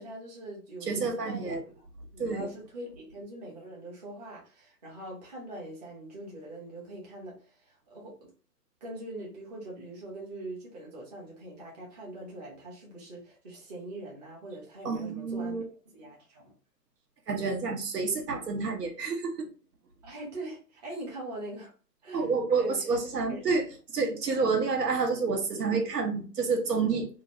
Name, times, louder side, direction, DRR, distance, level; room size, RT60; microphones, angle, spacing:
voice 1, 0.0-1.9 2.1-7.4 7.7-8.3 8.8-15.6 15.9-16.5 20.0-21.7 22.0-22.3 22.5-23.0 23.3-23.4, right 1 dB, 25° right, 0.8 m, -42 dB
voice 2, 0.8-1.6 2.2-2.5 14.8-15.6 17.3-19.5 22.1-23.7 23.9-27.1, right 4 dB, 70° right, 1.0 m, -29 dB
2.9 x 2.5 x 2.8 m
hypercardioid pair, 155°, 50 cm